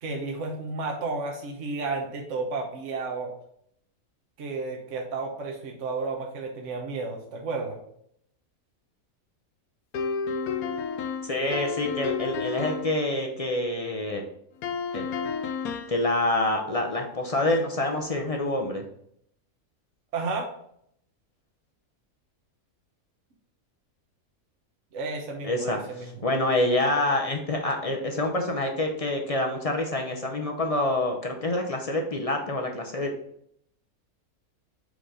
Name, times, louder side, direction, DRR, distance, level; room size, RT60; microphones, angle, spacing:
voice 1, 0.0-3.3 4.4-7.8 20.1-20.5 24.9-26.2, right 3 dB, 60° right, 1 dB, 1.2 m, -32 dB
sound 1, 9.9-12.9 14.6-16.1, left 6 dB, 80° left, 1.1 m, -31 dB
voice 2, 11.2-14.2 14.9-15.1 15.9-18.8 25.4-25.8 26.2-33.1, left 1 dB, 40° left, 2 dB, 0.5 m, -26 dB
5.1 x 5.0 x 3.8 m, 0.70 s
omnidirectional pair, 1.5 m